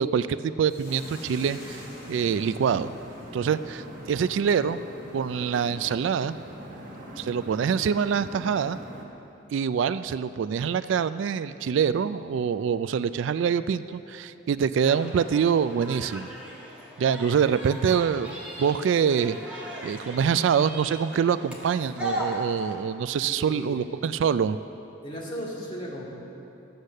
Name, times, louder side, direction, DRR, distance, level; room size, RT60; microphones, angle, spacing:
voice 1, 0.0-2.9 3.3-4.8 5.1-6.4 7.2-8.8 9.5-16.3 17.0-24.6, right 7 dB, 70° right, 14 dB, 0.3 m, -25 dB
Hiss, 0.7-5.2, left 2 dB, 50° left, 2.6 m, -51 dB
sound 1, 0.9-9.0, equal, 45° right, 1.4 m, -42 dB
sound 2, 14.8-22.7, right 1 dB, 5° right, 1.6 m, -38 dB
voice 2, 23.2-23.8 25.0-26.1, equal, 25° left, -5 dB, 2.3 m, -36 dB
13.0 x 8.1 x 6.5 m, 2.9 s
head